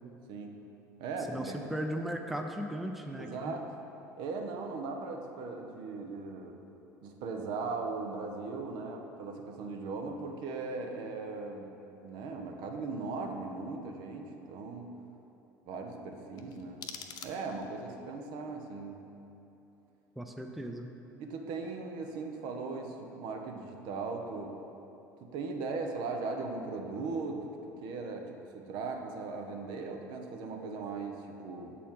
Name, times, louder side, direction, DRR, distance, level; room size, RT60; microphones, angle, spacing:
voice 1, 0.3-0.7 1.0-1.6 3.2-3.7 4.2-6.6 7.0-11.7 12.0-15.0 15.7-16.9 17.2-19.1 21.2-24.6 25.2-31.8, right 3 dB, 55° right, 3 dB, 0.7 m, -38 dB
voice 2, 1.3-3.5 20.2-20.9, equal, ahead, 3 dB, 0.5 m, -37 dB
sound 1, 16.3-17.8, left 7 dB, 45° left, 0.5 m, -46 dB
7.3 x 4.2 x 5.4 m, 3.0 s
figure-of-eight pair, 65°, 9 cm